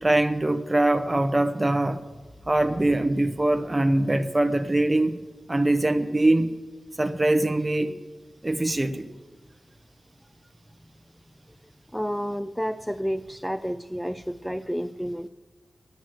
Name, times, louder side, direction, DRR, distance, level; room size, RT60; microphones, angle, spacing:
voice 1, 0.0-2.0 2.5-5.2 5.5-6.5 7.0-7.9 8.4-9.1, right 1 dB, 20° right, 0.8 m, -23 dB
voice 2, 11.9-15.3, equal, ahead, 0.3 m, -30 dB
10.5 x 9.1 x 7.7 m
wide cardioid pair, 100°, 0 cm